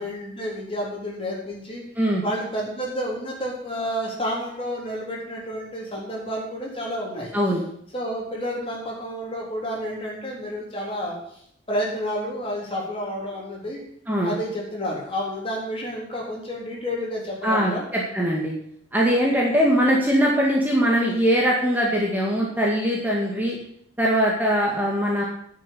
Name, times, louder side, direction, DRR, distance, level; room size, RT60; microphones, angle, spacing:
voice 1, 0.0-1.8 2.2-7.3 7.9-11.4 11.7-13.8 14.2-17.8, equal, 30° left, -2 dB, 3.7 m, -30 dB
voice 2, 7.3-7.6 14.1-14.3 17.4-18.5 18.9-23.6 24.0-25.2, equal, 10° right, -3 dB, 2.0 m, -21 dB
10.5 x 6.5 x 8.4 m, 0.67 s
head